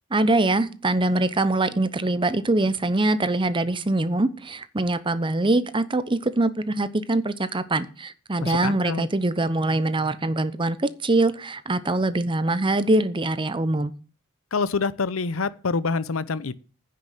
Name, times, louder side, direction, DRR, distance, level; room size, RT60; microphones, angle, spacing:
voice 1, 0.1-13.9, right 2 dB, 25° right, 0.8 m, -23 dB
voice 2, 8.4-9.1 14.5-16.5, left 4 dB, 90° left, 0.7 m, -26 dB
9.9 x 6.4 x 8.3 m
head